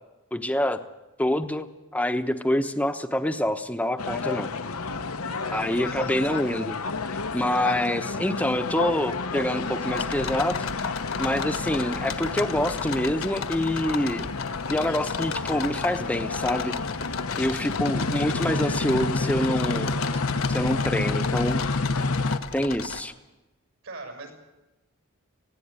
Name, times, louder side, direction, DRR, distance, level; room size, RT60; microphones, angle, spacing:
voice 1, 0.3-0.8 1.2-1.7 1.9-4.5 5.5-6.8 7.3-14.2 14.7-16.8 17.4-20.0 20.5-21.6 22.5-23.1, left 1 dB, 5° left, 8 dB, 0.9 m, -26 dB
sound 1, 4.0-22.4, left 3 dB, 85° left, 1.0 m, -30 dB
voice 2, 5.2-6.2 17.3-18.0 23.8-24.3, right 3 dB, 70° right, 5 dB, 6.3 m, -44 dB
sound 2, 9.9-23.0, left 6 dB, 65° left, 1.4 m, -36 dB
sound 3, 11.6-19.4, left 2 dB, 40° left, 0.7 m, -43 dB
19.0 x 16.0 x 9.7 m, 1.0 s
head